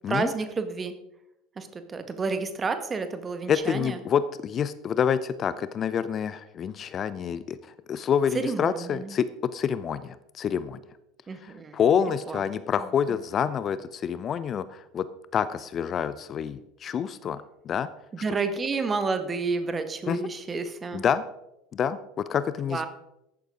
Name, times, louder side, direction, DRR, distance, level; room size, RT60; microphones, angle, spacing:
voice 1, 0.1-0.9 1.5-4.0 8.3-9.2 11.3-11.8 12.3-12.4 12.8-12.9 18.1-21.0 22.7-22.9, right 4 dB, 25° right, 9 dB, 1.7 m, -30 dB
voice 2, 3.5-10.8 11.4-15.1 15.3-17.9 20.1-20.2 20.9-21.2 21.7-22.8, left 8 dB, 35° left, 15 dB, 0.6 m, -27 dB
14.5 x 11.5 x 3.9 m, 0.84 s
figure-of-eight pair, 70°, 0 cm